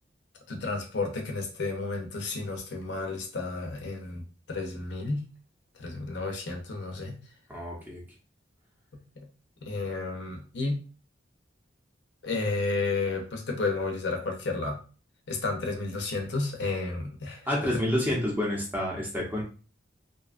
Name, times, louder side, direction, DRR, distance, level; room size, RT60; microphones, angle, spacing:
voice 1, 0.5-4.2 4.5-5.3 5.8-7.1 9.2-9.3 9.6-10.8 12.2-14.8 15.3-17.5, left 3 dB, 65° left, 1 dB, 0.6 m, -32 dB
voice 2, 7.5-8.0 17.5-19.4, left 1 dB, 10° right, -3 dB, 0.8 m, -29 dB
2.6 x 2.3 x 2.4 m, 0.37 s
head